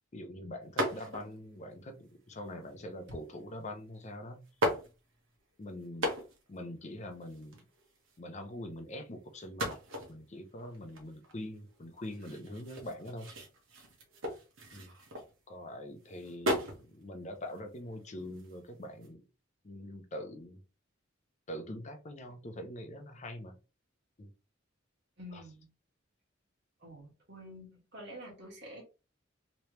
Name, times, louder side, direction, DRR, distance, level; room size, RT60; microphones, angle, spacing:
voice 1, 0.0-4.4 5.6-6.1 6.5-7.6 8.2-9.7 10.1-13.3 14.7-14.9 15.5-19.2 19.6-20.6 21.5-23.6 24.2-24.3 25.3-25.4, left 1 dB, 35° left, 6 dB, 0.6 m, -44 dB
sound 1, 0.8-1.4 2.2-2.7 3.8-3.9 4.4-5.4 5.8-6.6 6.9-7.0 7.1-8.2 9.4-15.6 16.0-16.9 17.3-19.1, equal, 90° right, 1.1 m, -37 dB
voice 2, 25.2-25.7 26.8-28.8, equal, 60° right, -1 dB, 1.6 m, -48 dB
3.3 x 3.0 x 3.0 m, 0.31 s
head